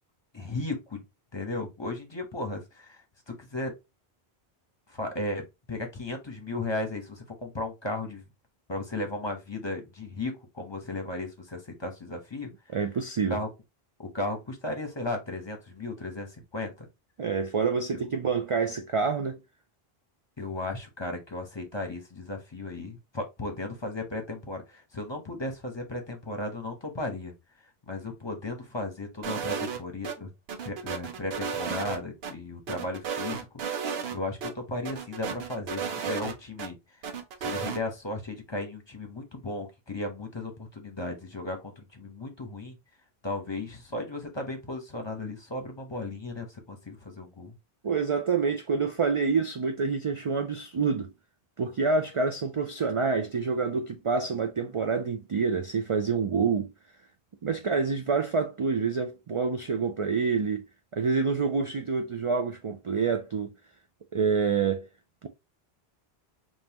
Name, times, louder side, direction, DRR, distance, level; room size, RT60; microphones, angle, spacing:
voice 1, 0.3-1.0 1.3-3.7 4.9-8.2 8.7-12.5 13.3-13.5 14.0-16.9 20.4-27.3 27.9-30.3 30.6-33.5 34.1-36.8 37.4-42.8 43.2-47.5, left 2 dB, 25° left, 1.0 m, -35 dB
voice 2, 12.7-13.4 17.2-19.4 47.8-51.1 51.6-56.7 57.4-60.6 60.9-63.5 64.1-64.9, right 5 dB, 50° right, 0.4 m, -27 dB
sound 1, 29.2-30.2 30.5-32.3 32.7-34.2 34.4-34.5 34.8-36.7 37.0-37.8, right 6 dB, 70° right, 1.0 m, -33 dB
5.4 x 2.6 x 2.9 m
omnidirectional pair, 1.1 m